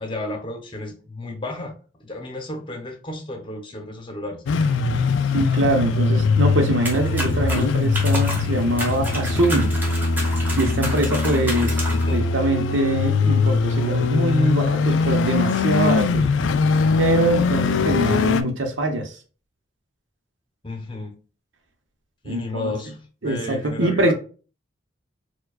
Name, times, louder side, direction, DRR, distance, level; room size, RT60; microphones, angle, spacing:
voice 1, 0.0-4.4 11.8-12.3 20.6-21.1 22.2-24.1, left 2 dB, 25° left, 0.8 m, -33 dB
sound 1, 4.5-18.4, left 4 dB, 90° left, 0.4 m, -21 dB
voice 2, 5.3-9.7 10.6-16.3 17.0-19.1 22.2-22.7 23.2-24.1, right 1 dB, 90° right, 0.8 m, -23 dB
sound 2, 6.8-12.2, right 1 dB, 10° right, 0.9 m, -31 dB
4.5 x 2.3 x 2.3 m
head